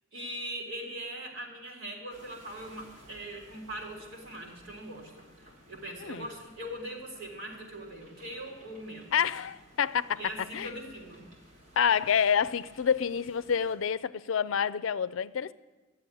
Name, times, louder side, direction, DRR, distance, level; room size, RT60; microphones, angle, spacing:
voice 1, 0.1-9.2 10.1-11.3, right 1 dB, 75° right, 3.9 m, -41 dB
sound 1, 2.1-13.7, equal, 45° right, 3.5 m, -56 dB
voice 2, 9.1-10.2 10.5-10.7 11.8-15.5, left 7 dB, 90° left, 0.5 m, -28 dB
13.5 x 7.7 x 9.9 m
head